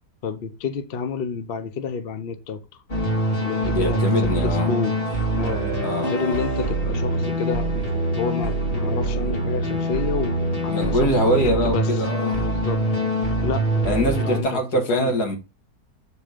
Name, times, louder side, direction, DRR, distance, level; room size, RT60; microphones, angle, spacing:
voice 1, 0.2-2.6 3.4-5.0 5.3-7.7 8.2-11.9 12.4-12.8 13.4-14.6 14.9-15.1, left 5 dB, 50° left, 0.7 m, -29 dB
sound 1, 2.9-14.4, right 1 dB, 35° left, 2.5 m, -24 dB
voice 2, 3.6-4.7 5.8-6.4 10.7-13.0 13.8-15.4, equal, 65° left, 2.4 m, -24 dB
sound 2, 5.1-10.0 10.7-11.2, right 6 dB, 45° right, 1.2 m, -38 dB
6.9 x 4.4 x 5.1 m
omnidirectional pair, 1.8 m